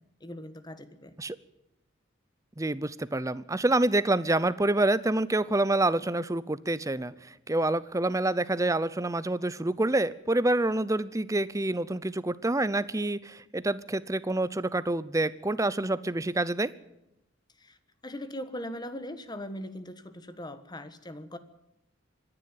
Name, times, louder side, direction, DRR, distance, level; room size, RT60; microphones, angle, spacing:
voice 1, 0.0-1.1 17.6-17.8 18.0-21.4, left 1 dB, 20° left, 11 dB, 1.4 m, -40 dB
voice 2, 2.6-16.7, right 2 dB, 15° right, 17 dB, 0.6 m, -27 dB
25.0 x 11.0 x 9.8 m, 0.88 s
head